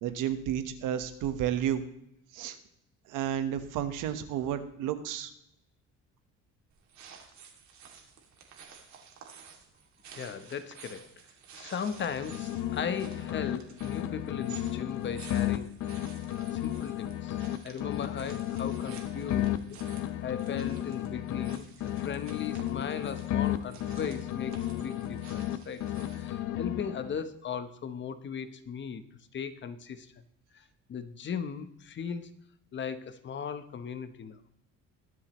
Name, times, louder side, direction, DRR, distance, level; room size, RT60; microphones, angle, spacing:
voice 1, 0.0-1.8 2.3-2.6 3.1-5.3, right 10 dB, 90° right, 9 dB, 1.3 m, -31 dB
sound 1, 6.7-26.4, right 6 dB, 65° right, 2.5 m, -52 dB
voice 2, 10.1-11.1 11.5-15.7 16.3-19.7 20.0-21.7 21.9-29.0 29.3-30.1 30.5-32.3 32.7-34.4, left 7 dB, 40° left, 10 dB, 0.9 m, -37 dB
sound 2, 11.9-13.6 13.8-17.6 17.8-21.6 21.8-25.6 25.8-27.2, left 12 dB, 70° left, 0.9 m, -33 dB
21.5 x 7.6 x 3.1 m, 0.75 s
cardioid pair, 140°, 31 cm